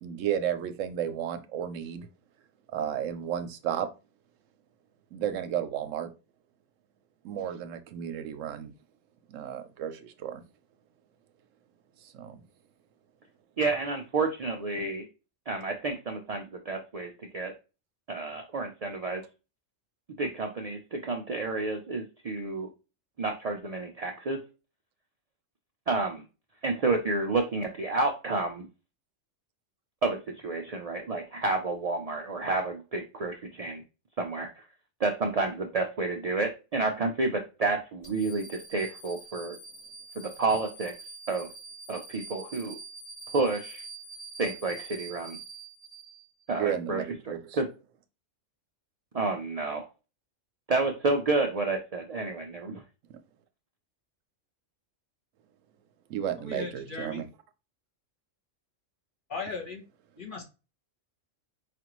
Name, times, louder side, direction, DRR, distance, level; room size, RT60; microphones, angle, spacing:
voice 1, 0.0-2.1 2.7-3.9 5.1-6.1 7.2-8.7 9.3-10.4 12.0-12.4 46.6-47.6 56.1-57.2, right 9 dB, 85° right, 10 dB, 1.0 m, -33 dB
voice 2, 13.6-15.1 15.5-17.5 18.1-19.2 20.2-22.7 23.2-24.4 25.9-26.2 26.6-28.7 30.0-33.8 34.2-34.6 35.0-39.6 40.2-40.9 41.3-41.5 41.9-42.7 43.3-43.8 44.4-45.4 46.5-47.7 49.1-49.9 50.7-52.8, right 3 dB, 65° right, 3 dB, 0.3 m, -30 dB
sound 1, 38.0-46.5, right 3 dB, 60° left, 1.6 m, -46 dB
voice 3, 56.4-57.2 59.3-59.8 60.2-60.5, left 4 dB, 45° left, 1 dB, 1.1 m, -37 dB
4.9 x 2.5 x 3.0 m, 0.30 s
omnidirectional pair, 1.3 m